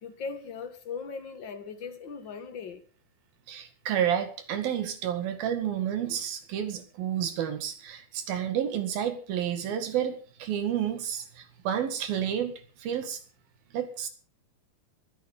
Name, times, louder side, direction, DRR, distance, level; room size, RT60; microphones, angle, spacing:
voice 1, 0.0-2.8, left 5 dB, 45° left, 1.7 m, -39 dB
voice 2, 3.5-13.2 13.7-14.1, right 9 dB, 85° right, 3.9 m, -30 dB
21.0 x 10.5 x 5.3 m
omnidirectional pair, 4.1 m